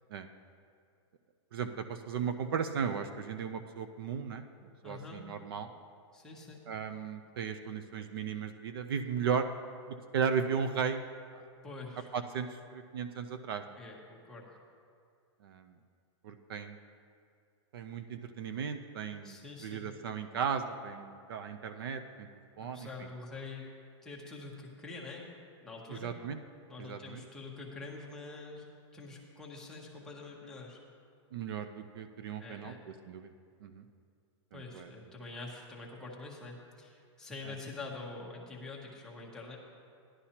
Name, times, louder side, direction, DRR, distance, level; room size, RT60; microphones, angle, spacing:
voice 1, 1.5-4.4 4.8-5.7 6.7-9.5 9.9-11.0 11.3-11.5 12.1-13.6 15.4-15.7 16.2-16.8 17.7-22.3 22.6-22.9 25.9-26.4 26.8-27.2 31.3-32.7 33.1-33.3 33.6-33.8 34.5-34.9 37.5-37.6, right 7 dB, 50° right, 9 dB, 0.5 m, -36 dB
voice 2, 4.8-5.2 6.1-6.6 11.6-12.1 13.8-14.5 19.2-19.9 22.5-23.7 24.0-25.3 25.6-26.1 26.7-28.7 28.9-30.8 32.4-32.8 34.5-39.6, left 3 dB, 5° left, -4 dB, 0.8 m, -46 dB
14.5 x 11.0 x 2.9 m, 2.3 s
supercardioid pair, 175°, 15 cm